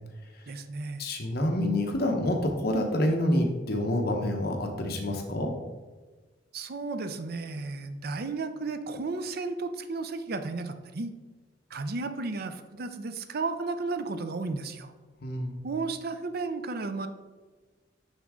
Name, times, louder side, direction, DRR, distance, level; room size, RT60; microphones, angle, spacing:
voice 1, 0.5-1.0 6.5-11.1 11.7-14.9 15.6-17.1, right 3 dB, 55° right, 9 dB, 0.5 m, -33 dB
voice 2, 1.0-5.5 15.2-15.6, left 1 dB, 55° left, 2 dB, 1.0 m, -27 dB
9.4 x 3.7 x 3.6 m, 1.3 s
head